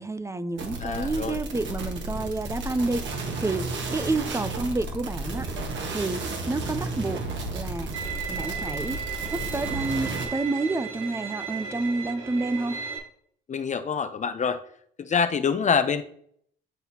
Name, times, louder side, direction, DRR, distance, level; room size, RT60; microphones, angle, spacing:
voice 1, 0.0-5.5 5.9-7.2 7.5-7.9 8.3-9.0 9.3-12.8, right 2 dB, 15° right, 0.4 m, -29 dB
sound 1, 0.6-10.3, right 2 dB, 70° right, 1.5 m, -33 dB
voice 2, 0.8-1.4 13.5-14.6 15.0-16.0, left 6 dB, 40° left, 0.5 m, -25 dB
Bowed string instrument, 7.9-13.0, right 6 dB, 85° right, 1.5 m, -35 dB
9.1 x 3.9 x 2.8 m
cardioid pair, 90°, 20 cm